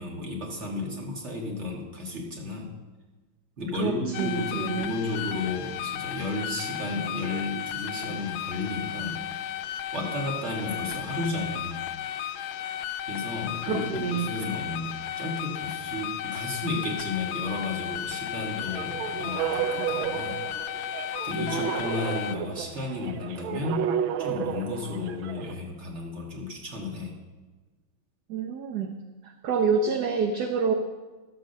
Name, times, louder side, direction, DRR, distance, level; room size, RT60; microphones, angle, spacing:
voice 1, 0.0-2.7 3.6-9.2 9.9-11.9 13.1-20.4 21.2-23.9 24.2-27.2, left 2 dB, 35° right, -1 dB, 2.0 m, -33 dB
voice 2, 3.8-4.9 13.6-14.3 28.3-29.0 29.2-30.7, right 5 dB, 60° right, 4 dB, 1.2 m, -27 dB
sound 1, 4.1-22.4, left 11 dB, 80° left, 1.3 m, -34 dB
sound 2, 18.7-25.5, right 9 dB, 75° right, 1.4 m, -32 dB
12.5 x 6.7 x 6.6 m, 1.3 s
omnidirectional pair, 2.3 m